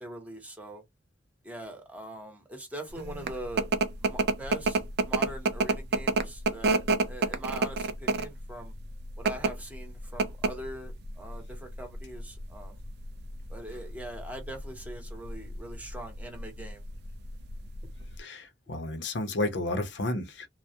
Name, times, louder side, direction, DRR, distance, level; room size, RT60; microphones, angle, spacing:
voice 1, 0.0-0.8 1.4-3.7 4.0-8.7 9.2-12.8 13.5-16.8, right 1 dB, 10° right, 0.8 m, -42 dB
sound 1, 3.0-18.2, right 3 dB, 60° right, 0.4 m, -30 dB
voice 2, 18.2-20.5, left 2 dB, 70° left, 0.6 m, -32 dB
2.2 x 2.0 x 2.7 m
head